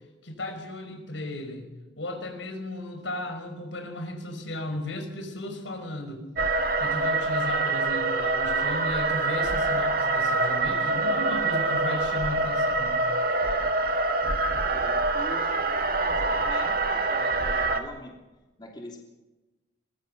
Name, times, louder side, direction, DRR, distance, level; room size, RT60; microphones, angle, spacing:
voice 1, 0.2-1.6 2.0-6.3 6.8-13.0, left 1 dB, 80° left, 5 dB, 5.4 m, -35 dB
sound 1, 6.4-17.8, right 3 dB, 50° right, 1.7 m, -25 dB
voice 2, 14.7-18.1 18.6-19.1, left 1 dB, 25° left, 0 dB, 3.0 m, -43 dB
23.5 x 21.5 x 6.6 m, 1.1 s
head